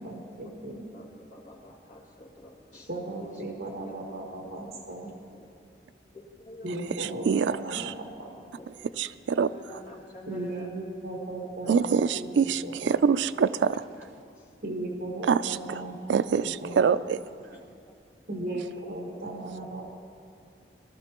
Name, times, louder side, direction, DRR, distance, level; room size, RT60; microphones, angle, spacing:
voice 1, 0.0-0.8 2.9-5.1 6.6-8.5 10.3-13.0 14.6-17.0 18.3-19.9, right 1 dB, 55° right, 0 dB, 1.5 m, -37 dB
voice 2, 0.7-2.9 3.2-3.3 3.8-4.0 5.3-5.5 6.1-6.7 7.3-7.4 7.7-7.9 8.5-8.7 9.4-10.7 11.6-11.7 14.4-14.5 15.3-15.4 17.4-18.0 18.4-18.7 19.1-19.2, left 2 dB, 45° left, -5 dB, 2.1 m, -48 dB
voice 3, 7.0-7.9 9.0-9.5 11.7-13.7 15.2-15.6 16.1-17.2, right 6 dB, 80° right, 13 dB, 0.3 m, -25 dB
19.0 x 13.0 x 3.0 m, 2.3 s
head